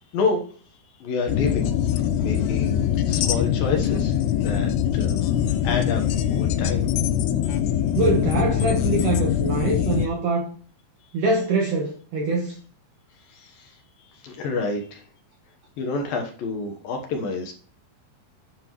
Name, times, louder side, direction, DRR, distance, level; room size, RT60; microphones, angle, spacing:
voice 1, 0.1-0.4 1.0-1.7 2.2-5.2 5.6-6.9 13.3-13.8 14.1-15.0 15.8-17.5, left 3 dB, 65° left, 2.6 m, -28 dB
sound 1, 1.3-10.1, left 10 dB, 80° left, 2.7 m, -23 dB
voice 2, 7.9-10.5 11.1-12.6, right 3 dB, 65° right, 2.1 m, -24 dB
9.6 x 9.3 x 3.1 m
omnidirectional pair, 5.1 m